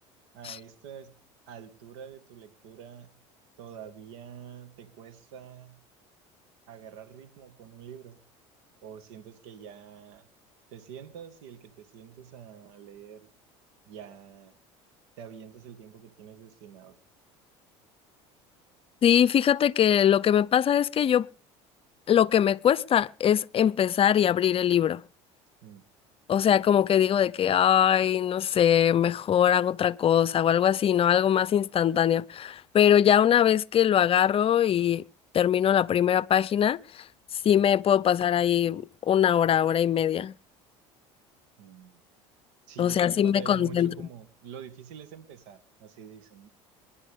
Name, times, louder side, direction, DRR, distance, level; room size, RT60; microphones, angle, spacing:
voice 1, 0.3-1.2 1.5-3.2 3.6-5.8 6.7-8.3 8.8-10.3 10.7-13.3 13.9-14.6 15.2-17.0 25.6-25.8 41.6-42.0 42.7-46.5, right 8 dB, 80° right, 1.9 m, -46 dB
voice 2, 19.0-21.3 22.1-25.0 26.3-35.0 35.3-37.0 37.4-40.3 42.8-44.1, left 9 dB, 40° left, 0.6 m, -22 dB
26.5 x 11.0 x 3.7 m
supercardioid pair, 90°, 15 cm